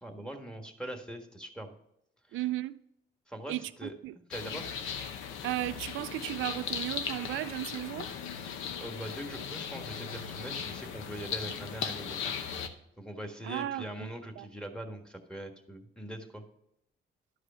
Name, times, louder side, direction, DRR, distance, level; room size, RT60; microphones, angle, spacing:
voice 1, 0.0-1.7 2.3-2.4 3.3-3.9 4.3-4.7 8.8-12.3 13.0-16.4, right 1 dB, 5° left, 1.5 m, -42 dB
voice 2, 2.3-2.8 3.5-4.2 5.4-8.1 13.4-14.1 14.4-14.5, right 15 dB, 80° right, 0.4 m, -35 dB
sound 1, 4.3-12.7, left 7 dB, 90° left, 0.8 m, -38 dB
11.5 x 4.9 x 5.6 m
cardioid pair, 90°, 20 cm